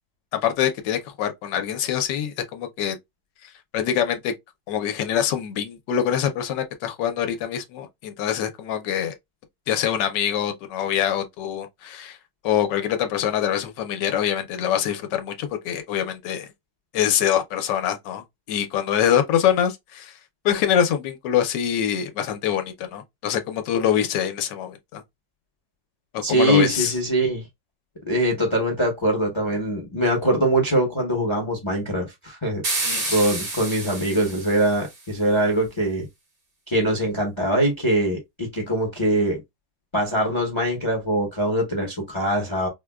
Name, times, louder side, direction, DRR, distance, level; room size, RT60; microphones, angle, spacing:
voice 1, 0.3-3.0 3.7-4.3 4.7-9.1 9.7-12.2 12.4-16.5 16.9-20.1 20.4-25.0 26.1-26.9 32.8-33.2, left 9 dB, 75° left, 1.3 m, -24 dB
voice 2, 26.2-27.5 28.1-32.6 33.1-36.1 36.7-39.4 39.9-42.7, right 1 dB, 25° left, 0.6 m, -22 dB
sound 1, 32.6-35.0, right 2 dB, 70° right, 2.4 m, -29 dB
4.8 x 2.2 x 2.2 m
omnidirectional pair, 2.0 m